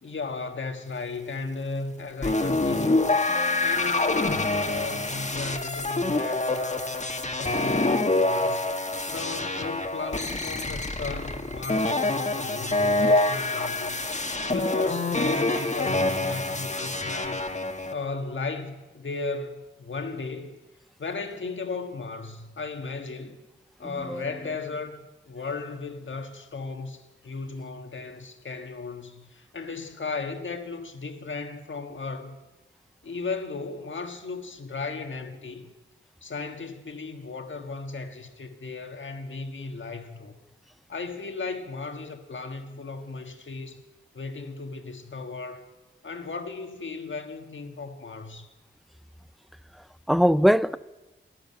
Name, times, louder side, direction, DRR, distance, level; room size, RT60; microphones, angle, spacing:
voice 1, 0.0-3.2 3.6-6.8 7.4-8.7 9.1-17.5 17.9-20.6 21.0-23.4 23.8-32.4 33.0-35.7 36.2-40.4 40.9-43.8 44.1-45.6 46.0-48.5, left 4 dB, 70° left, 1.6 m, -36 dB
sound 1, 2.2-17.9, left 2 dB, 35° left, 1.5 m, -26 dB
voice 2, 3.3-3.7 23.8-24.3 50.1-50.8, equal, ahead, 0.5 m, -23 dB
14.0 x 12.0 x 8.8 m
cardioid pair, 40°, 21 cm